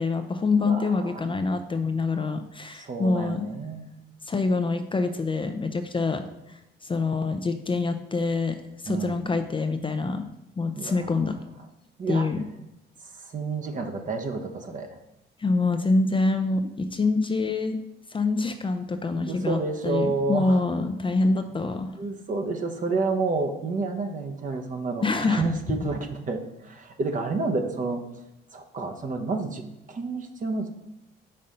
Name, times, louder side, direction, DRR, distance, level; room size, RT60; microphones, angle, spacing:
voice 1, 0.0-3.5 4.3-6.2 6.8-8.6 8.8-10.3 10.6-11.4 12.1-12.4 15.4-17.8 18.1-19.6 19.8-21.9 25.0-25.8, left 3 dB, 25° left, 8 dB, 0.5 m, -25 dB
voice 2, 2.7-3.9 8.9-9.2 10.7-11.1 12.0-12.3 13.1-14.9 19.3-20.6 22.0-28.0 28.5-30.7, right 3 dB, 40° right, 4 dB, 1.0 m, -29 dB
5.5 x 4.2 x 5.2 m, 0.88 s
cardioid pair, 90°, 20 cm